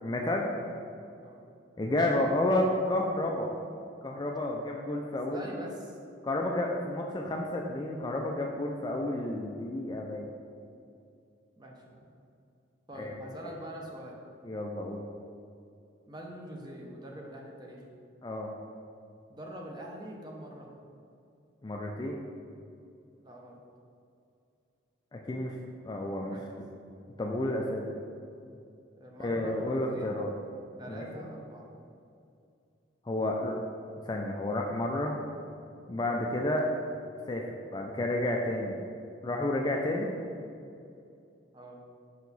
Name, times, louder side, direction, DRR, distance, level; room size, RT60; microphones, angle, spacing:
voice 1, 0.0-0.5 1.8-3.5 4.0-5.4 6.2-10.3 13.0-13.1 13.4-13.5 14.4-15.0 18.2-18.5 21.6-22.2 25.1-25.5 25.8-26.3 27.2-27.9 29.2-30.3 30.9-31.3 33.1-33.5 34.1-35.2 35.9-36.7 37.3-37.4 37.7-38.8 39.2-40.1, left 1 dB, 20° left, 0 dB, 0.3 m, -31 dB
voice 2, 5.1-6.0 11.6-12.1 12.9-14.2 16.1-17.8 19.3-20.7 23.2-23.6 26.3-26.4 29.0-30.2 30.8-31.7 41.5-41.8, right 1 dB, 20° right, -1 dB, 0.7 m, -44 dB
5.6 x 4.6 x 4.0 m, 2.5 s
head